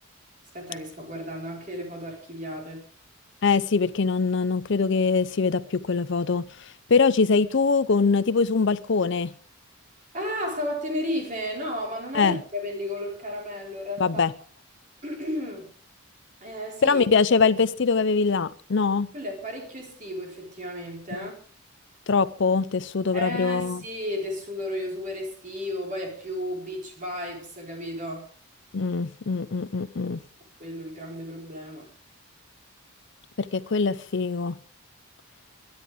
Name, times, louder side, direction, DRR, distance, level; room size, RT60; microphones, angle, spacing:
voice 1, 0.5-2.8 10.1-14.2 15.0-15.7 16.4-17.0 19.1-21.3 23.1-28.3 30.6-31.9, left 1 dB, 35° right, 4.6 m, -33 dB
voice 2, 3.4-9.3 12.1-12.4 14.0-14.3 16.8-19.1 21.1-21.3 22.1-23.8 28.7-30.2 33.4-34.5, left 4 dB, 55° left, 0.5 m, -23 dB
22.0 x 10.5 x 3.6 m
head